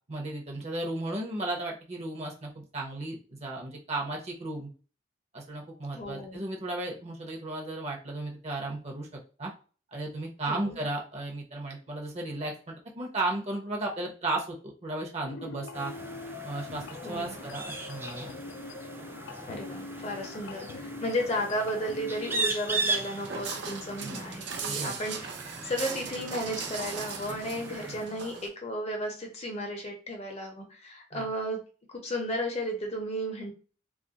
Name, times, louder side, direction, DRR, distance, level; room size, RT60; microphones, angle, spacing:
voice 1, 0.1-4.7 5.3-9.1 9.4-9.5 9.9-15.9 16.4-16.8 17.1-18.3 24.0-24.2 24.7-24.9 31.1-31.3, right 2 dB, 35° right, 0 dB, 0.7 m, -34 dB
voice 2, 5.9-6.4 10.5-10.8 17.0-17.4 19.5-25.3 25.6-31.6 31.9-33.5, equal, 35° left, 2 dB, 0.7 m, -34 dB
sound 1, 15.2-22.3, left 4 dB, 80° left, 0.4 m, -43 dB
sound 2, 15.7-28.1, right 3 dB, 10° right, 0.3 m, -38 dB
Walk footsteps, 22.7-28.5, right 5 dB, 70° right, 0.5 m, -39 dB
2.3 x 2.0 x 3.9 m, 0.37 s
head